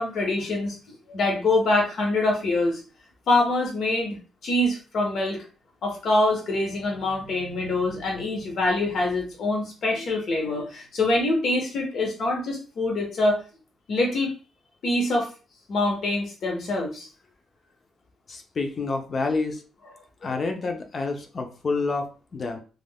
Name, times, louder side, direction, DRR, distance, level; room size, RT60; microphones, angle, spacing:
voice 1, 0.0-2.8 3.3-4.2 4.4-5.4 5.8-13.4 13.9-14.3 14.8-15.3 15.7-17.1, left 2 dB, 55° left, 1 dB, 1.0 m, -25 dB
voice 2, 18.3-19.6 20.2-22.6, left 3 dB, 35° left, 5 dB, 0.5 m, -28 dB
3.4 x 2.4 x 2.2 m, 0.35 s
cardioid pair, 140°, 0 cm